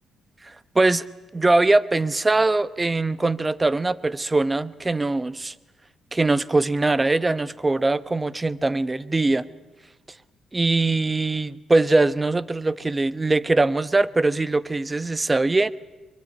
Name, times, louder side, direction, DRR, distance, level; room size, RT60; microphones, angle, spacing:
voice 1, 1.3-5.5 6.1-9.5 10.5-15.7, right 2 dB, 20° right, 17 dB, 0.9 m, -21 dB
24.0 x 23.0 x 9.7 m, 1.2 s
cardioid pair, 90°, 0 cm